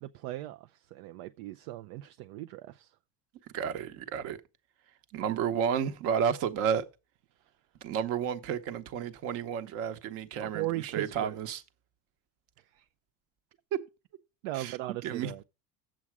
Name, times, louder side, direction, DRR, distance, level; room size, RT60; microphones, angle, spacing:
voice 1, 0.0-3.0 7.4-7.5 10.4-11.4 12.6-12.9 14.4-15.4, right 16 dB, 65° right, 0.5 m, -38 dB
voice 2, 3.5-4.4 5.1-6.9 7.8-11.6 13.7-13.8 14.5-14.8 15.0-15.3, right 8 dB, 50° right, 1.0 m, -31 dB
8.4 x 7.6 x 4.7 m
cardioid pair, 165°, 31 cm